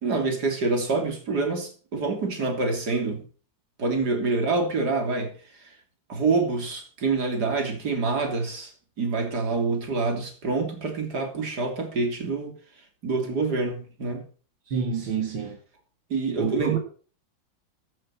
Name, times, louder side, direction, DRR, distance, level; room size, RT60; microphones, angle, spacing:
voice 1, 0.0-3.2 3.8-5.7 6.1-8.7 9.0-12.5 13.0-14.2 16.1-16.8, right 3 dB, 55° right, 3.6 m, -26 dB
voice 2, 14.7-15.6 16.4-16.8, right 6 dB, 80° right, 2.5 m, -27 dB
15.5 x 7.6 x 6.0 m
omnidirectional pair, 2.1 m